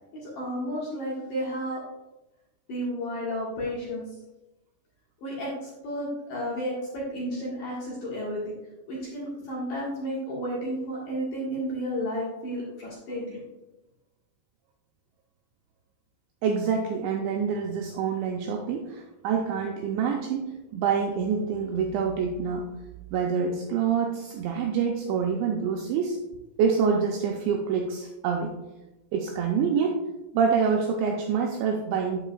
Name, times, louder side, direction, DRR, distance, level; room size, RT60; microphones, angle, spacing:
voice 1, 0.2-1.8 2.7-4.0 5.2-8.5 8.9-13.4, equal, 70° left, -5 dB, 2.0 m, -32 dB
voice 2, 16.4-22.8 23.1-26.2 26.6-28.5 29.1-30.0 30.3-32.2, right 6 dB, 90° right, 1 dB, 2.6 m, -26 dB
8.9 x 8.4 x 2.3 m, 1.0 s
omnidirectional pair, 6.0 m